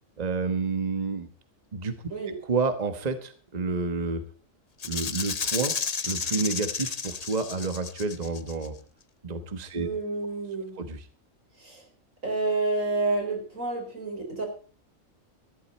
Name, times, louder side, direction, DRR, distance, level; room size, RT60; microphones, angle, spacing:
voice 1, 0.2-1.3 1.7-4.2 4.8-5.7 6.0-8.7 9.2-9.9 10.8-11.1, right 4 dB, 30° right, 9 dB, 1.3 m, -30 dB
Rattle (instrument), 4.8-8.7, left 5 dB, 35° left, 0.8 m, -32 dB
voice 2, 9.8-10.8 11.6-11.8 12.2-14.5, right 3 dB, 75° right, 3 dB, 4.8 m, -29 dB
14.0 x 14.0 x 4.3 m, 0.41 s
omnidirectional pair, 1.4 m